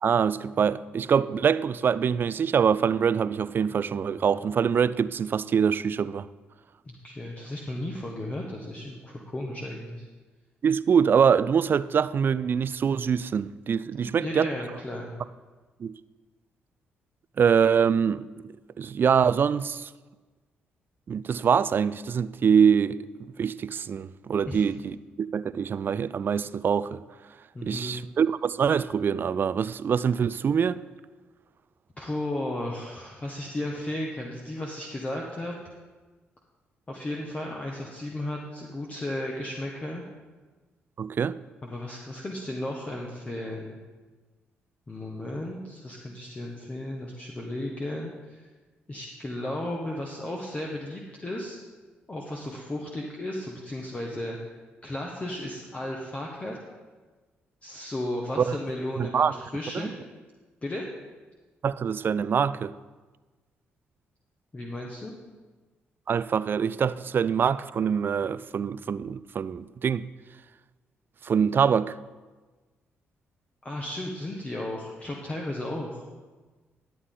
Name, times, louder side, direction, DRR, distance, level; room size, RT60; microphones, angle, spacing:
voice 1, 0.0-6.3 10.6-14.5 15.8-15.9 17.4-18.3 18.8-19.9 21.1-27.0 27.6-30.8 41.0-41.4 58.5-58.6 59.0-59.4 59.7-59.9 61.6-62.7 66.1-70.0 71.2-71.9, right 7 dB, 50° right, 0.3 m, -24 dB
voice 2, 6.8-10.0 14.0-15.1 24.5-24.6 27.5-27.9 32.0-35.5 36.9-40.0 41.6-43.8 44.9-48.5 48.9-51.6 52.1-54.5 54.8-56.6 57.6-59.9 60.6-60.8 64.5-65.1 73.6-76.0, left 1 dB, 30° left, 1.3 m, -34 dB
11.5 x 8.4 x 3.8 m
supercardioid pair, 60°, 5 cm